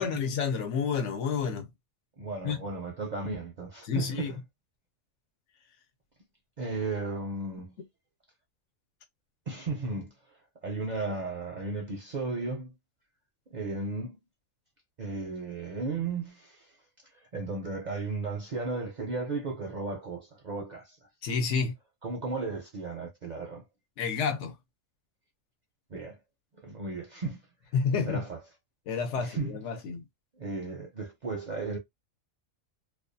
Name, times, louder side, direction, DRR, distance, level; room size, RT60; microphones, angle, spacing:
voice 1, 0.0-1.7 2.4-2.6 3.8-4.3 21.2-21.7 24.0-24.6 27.7-28.2 28.9-30.0, left 6 dB, 70° left, 0.9 m, -29 dB
voice 2, 2.2-4.4 6.6-7.8 9.5-10.1 10.6-12.7 13.5-14.2 15.0-16.7 17.1-21.0 22.0-23.6 25.9-26.2 26.6-27.4 28.1-28.4 29.2-29.6 30.4-31.8, right 3 dB, 50° right, 0.5 m, -35 dB
2.5 x 2.2 x 2.5 m
omnidirectional pair, 1.3 m